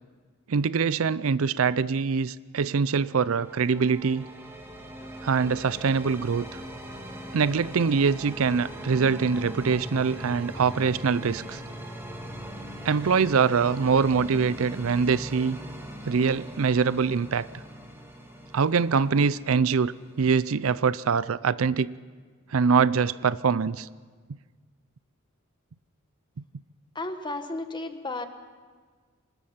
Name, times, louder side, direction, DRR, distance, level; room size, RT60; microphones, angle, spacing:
voice 1, 0.5-4.2 5.2-6.5 7.3-11.6 12.8-15.6 16.0-17.5 18.5-21.9 22.5-23.9, right 5 dB, 70° right, 18 dB, 0.5 m, -24 dB
sound 1, 3.0-20.7, equal, 10° right, 2.1 m, -41 dB
voice 2, 26.9-28.3, left 2 dB, 20° left, 7 dB, 1.4 m, -33 dB
25.0 x 20.0 x 5.8 m, 1.5 s
head